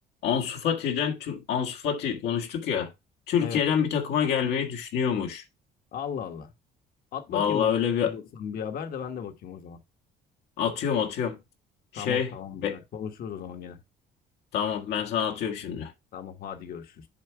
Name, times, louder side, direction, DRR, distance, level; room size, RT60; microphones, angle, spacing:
voice 1, 0.2-2.9 3.3-5.4 7.3-8.1 10.6-11.4 11.9-12.3 12.6-12.8 14.5-15.9, left 8 dB, 80° left, 1.6 m, -27 dB
voice 2, 5.9-6.5 7.1-7.7 8.0-9.8 11.9-13.8 16.1-17.1, left 7 dB, 60° left, 1.4 m, -36 dB
7.6 x 4.5 x 4.6 m
cardioid pair, 110°, 17 cm